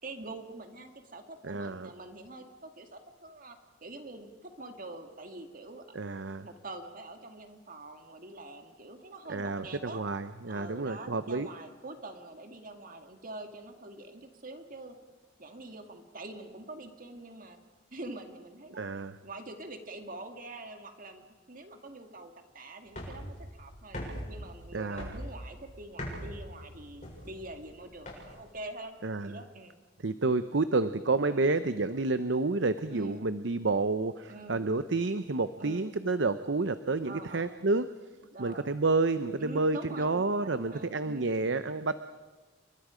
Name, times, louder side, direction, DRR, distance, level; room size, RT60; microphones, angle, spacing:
voice 1, 0.0-5.9 6.4-10.0 10.5-15.0 15.4-17.6 17.9-18.9 19.2-29.0 29.2-29.8 31.3-31.5 32.9-33.3 34.3-34.7 35.6-36.0 37.0-37.5 38.3-38.7 39.4-41.3, right 2 dB, 45° right, 6 dB, 2.0 m, -45 dB
voice 2, 1.5-1.9 5.9-6.4 9.3-11.5 18.8-19.2 24.7-25.2 29.0-29.4 30.0-37.8 38.4-41.9, right 3 dB, 65° right, 11 dB, 0.8 m, -29 dB
sound 1, 22.9-28.5, equal, 40° left, 7.3 m, -42 dB
29.5 x 24.0 x 5.1 m, 1.2 s
head